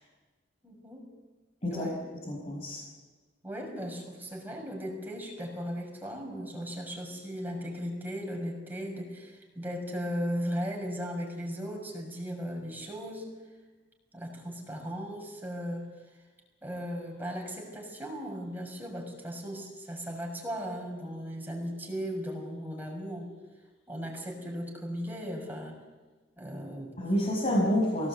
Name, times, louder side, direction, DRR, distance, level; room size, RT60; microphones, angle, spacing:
voice 1, 0.6-1.1 1.7-2.0 3.4-13.3 14.1-15.9 16.6-23.3 23.9-25.8 26.4-27.0, equal, 10° right, 0 dB, 6.5 m, -37 dB
voice 2, 2.3-2.8 27.0-28.1, equal, 40° left, -5 dB, 5.5 m, -28 dB
24.0 x 18.5 x 8.5 m, 1.3 s
head